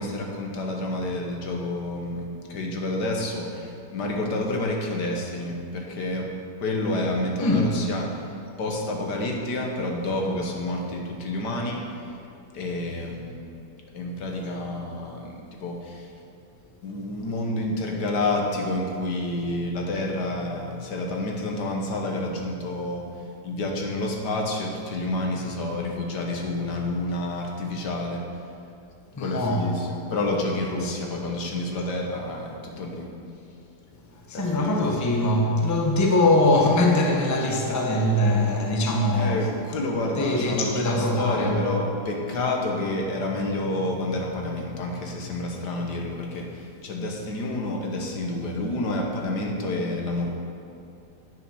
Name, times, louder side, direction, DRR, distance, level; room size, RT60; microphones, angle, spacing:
voice 1, 0.0-6.3 6.6-8.2 8.6-12.0 12.5-13.4 13.9-16.1 16.8-23.1 23.4-28.2 29.2-33.1 34.3-34.8 39.1-50.3, left 2 dB, 75° left, 0 dB, 1.8 m, -29 dB
voice 2, 7.4-7.7 29.2-29.7 30.8-30.9 34.3-39.5 40.2-41.6, left 1 dB, 15° left, 0 dB, 0.7 m, -22 dB
9.3 x 6.9 x 6.2 m, 2.5 s
omnidirectional pair, 1.8 m